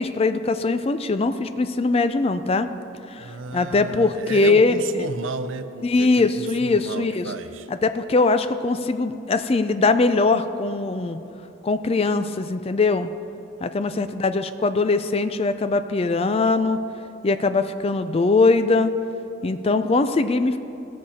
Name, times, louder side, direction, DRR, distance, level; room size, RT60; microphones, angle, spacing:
voice 1, 0.0-2.7 3.1-5.1 5.8-7.2 7.8-11.2 11.6-13.1 13.6-16.8 17.2-18.9 19.4-20.6, left 3 dB, 30° left, 10 dB, 0.4 m, -21 dB
voice 2, 3.2-7.7, right 3 dB, 85° right, 10 dB, 0.6 m, -33 dB
18.0 x 6.5 x 4.2 m, 2.8 s
head